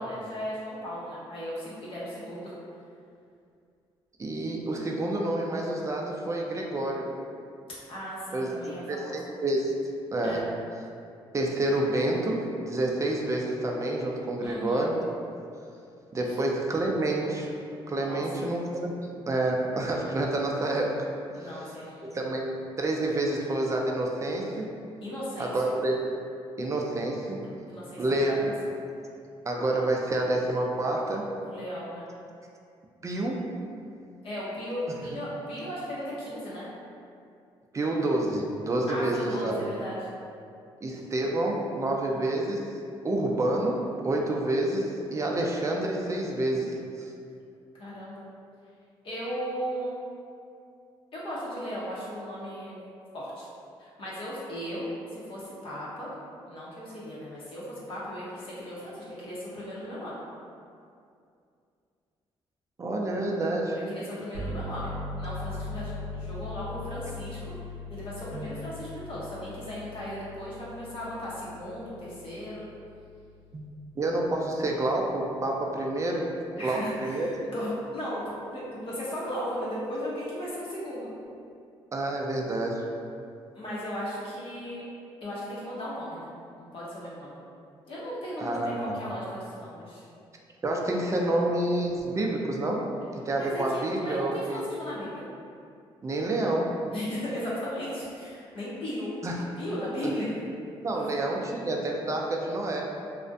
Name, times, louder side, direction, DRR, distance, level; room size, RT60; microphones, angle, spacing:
voice 1, 0.0-2.6 7.9-9.3 10.2-10.4 14.4-14.9 18.0-18.2 21.3-22.2 25.0-25.7 27.7-28.5 31.4-32.1 34.2-36.7 38.9-40.1 47.7-48.2 49.0-49.9 51.1-52.8 53.1-53.5 53.8-56.1 56.5-60.2 63.7-67.4 67.9-72.6 76.6-81.1 83.5-84.8 85.2-86.3 86.6-87.3 87.9-90.1 93.4-95.2 96.9-100.3 101.0-101.1, equal, 55° left, -8 dB, 0.7 m, -36 dB
voice 2, 4.2-7.1 8.3-9.7 10.1-10.5 11.3-15.0 16.1-17.5 17.9-18.9 19.3-20.9 22.1-22.5 22.8-24.7 25.4-26.0 26.6-27.4 28.0-28.4 29.5-31.3 33.0-33.5 37.7-39.6 40.8-42.7 43.0-46.8 62.8-63.8 68.3-68.5 73.5-73.7 74.0-76.3 76.6-77.3 81.9-82.8 88.4-89.0 90.6-92.9 93.2-94.6 96.0-96.7 99.2-99.4 100.8-102.8, right 1 dB, 30° right, -1 dB, 0.4 m, -28 dB
sound 1, 64.3-74.9, left 2 dB, 75° right, 0.6 m, -40 dB
2.4 x 2.1 x 2.5 m, 2.4 s
supercardioid pair, 70°, 11 cm